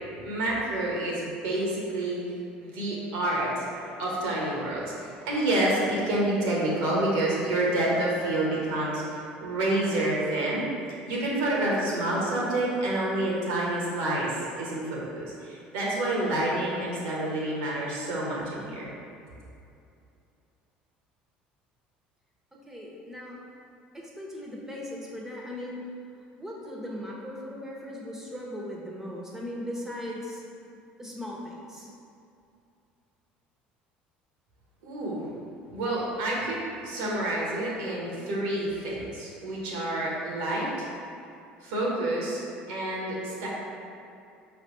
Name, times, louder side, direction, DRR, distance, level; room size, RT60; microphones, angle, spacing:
voice 1, 0.2-2.2 2.6-10.7 11.1-18.9 34.8-35.3 35.7-36.6 36.8-40.9 41.6-43.5, right 1 dB, 75° right, -4 dB, 1.1 m, -28 dB
voice 2, 22.5-23.4 23.9-25.8 26.3-30.4 31.0-31.9, left 1 dB, 10° right, -3 dB, 1.0 m, -38 dB
4.9 x 3.3 x 3.1 m, 2.6 s
hypercardioid pair, 75°, 5 cm